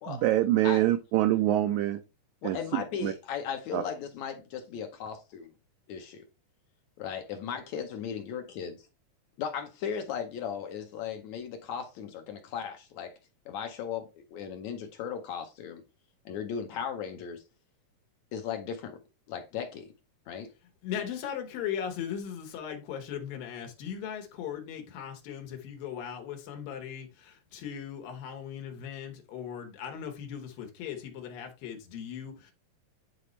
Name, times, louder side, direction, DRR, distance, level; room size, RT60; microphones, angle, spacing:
voice 1, 0.1-2.0 2.4-3.1 3.7-3.8, right 14 dB, 85° right, 1.7 m, -25 dB
voice 2, 2.4-5.5 5.9-6.2 7.0-8.9 9.4-13.1 13.5-15.8 16.3-17.4 18.3-19.0 19.3-19.9 20.3-20.5, left 7 dB, 70° left, 1.8 m, -37 dB
voice 3, 20.8-32.5, left 8 dB, 85° left, 3.0 m, -38 dB
9.4 x 4.0 x 3.2 m
omnidirectional pair, 3.9 m